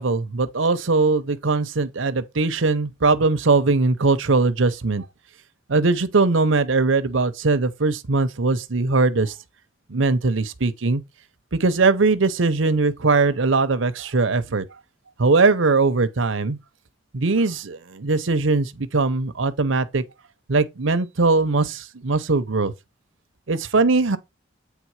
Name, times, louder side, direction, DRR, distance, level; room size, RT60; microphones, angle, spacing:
voice 1, 0.0-5.1 5.7-9.3 9.9-11.0 11.5-14.6 15.2-16.6 17.1-20.0 20.5-22.7 23.5-24.2, right 3 dB, 75° right, 0.8 m, -20 dB
8.3 x 3.5 x 4.8 m
head